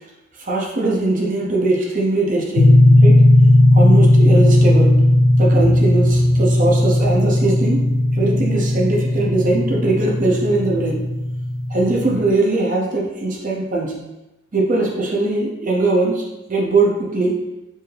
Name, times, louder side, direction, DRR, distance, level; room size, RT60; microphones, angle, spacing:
voice 1, 0.4-2.8 3.0-3.2 3.7-5.0 5.4-7.8 8.1-11.0 11.7-14.0 14.5-17.4, right 2 dB, 40° right, -2 dB, 0.6 m, -20 dB
sound 1, 2.6-12.3, left 1 dB, 75° left, 0.3 m, -15 dB
4.5 x 2.7 x 3.3 m, 0.99 s
head